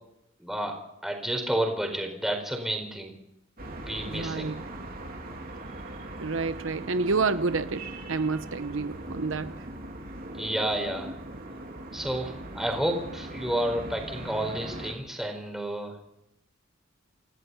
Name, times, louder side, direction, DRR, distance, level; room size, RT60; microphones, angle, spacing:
voice 1, 0.4-0.7 1.0-3.1 3.8-4.6 10.3-11.1 11.9-16.0, right 1 dB, ahead, 4.6 m, -30 dB
sound 1, 3.6-14.9, right 1 dB, 45° right, 3.3 m, -40 dB
voice 2, 4.1-4.6 6.2-9.7, right 4 dB, 70° right, 0.9 m, -29 dB
27.5 x 17.0 x 5.7 m
head